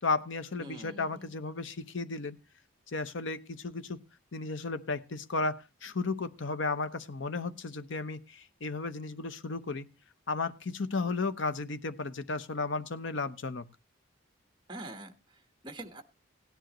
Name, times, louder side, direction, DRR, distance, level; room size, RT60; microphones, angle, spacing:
voice 1, 0.0-2.4 2.9-4.0 4.3-9.9 10.3-13.7, left 3 dB, 70° left, 12 dB, 0.8 m, -34 dB
voice 2, 0.6-1.4 14.7-16.0, right 1 dB, 25° right, 6 dB, 1.2 m, -45 dB
17.0 x 10.5 x 3.0 m, 0.27 s
head